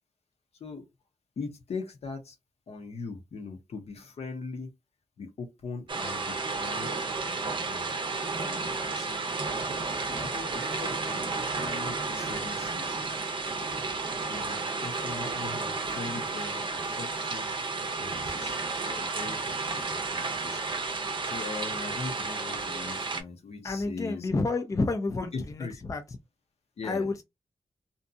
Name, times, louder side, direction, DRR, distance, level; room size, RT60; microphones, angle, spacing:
voice 1, 1.4-2.4 2.7-4.7 5.2-7.9 8.3-9.3 9.9-13.0 14.2-16.7 17.0-17.5 17.9-24.6 25.3-25.8 26.8-27.1, left 4 dB, 70° left, 0.7 m, -41 dB
sound 1, 5.9-23.2, right 3 dB, 45° right, 0.5 m, -32 dB
voice 2, 23.6-26.0 26.8-27.2, left 3 dB, 30° left, 0.4 m, -30 dB
2.6 x 2.2 x 2.6 m
wide cardioid pair, 95°, 11 cm